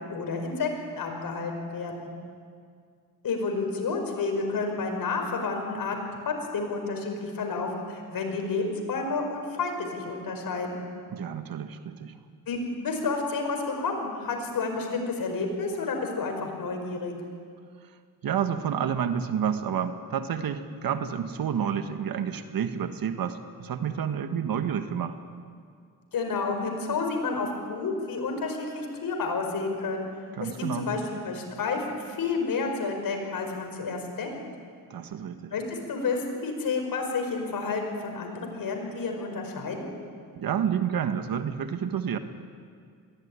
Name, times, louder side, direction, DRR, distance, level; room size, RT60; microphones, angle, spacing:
voice 1, 0.1-2.1 3.2-6.0 6.3-10.8 12.5-17.1 26.1-30.1 30.4-34.4 35.5-39.9, left 4 dB, 60° left, 3 dB, 5.4 m, -30 dB
voice 2, 11.1-12.2 18.2-25.2 30.4-30.9 34.9-35.5 40.4-42.2, right 8 dB, 60° right, 8 dB, 1.6 m, -29 dB
22.0 x 16.0 x 9.8 m, 2.1 s
cardioid pair, 85°, 39 cm